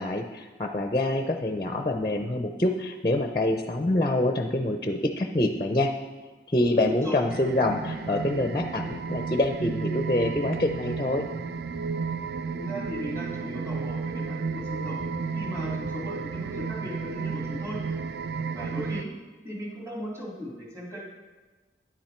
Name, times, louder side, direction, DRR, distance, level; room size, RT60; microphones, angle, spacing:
voice 1, 0.0-5.9 6.5-11.2, left 1 dB, 25° left, 5 dB, 0.5 m, -26 dB
voice 2, 6.9-7.2 12.5-15.0 15.3-17.8 18.5-19.1 19.4-21.0, left 1 dB, 15° right, -3 dB, 2.4 m, -37 dB
sound 1, 7.3-19.0, right 5 dB, 60° right, 0.4 m, -32 dB
10.0 x 8.8 x 4.4 m, 1.3 s
head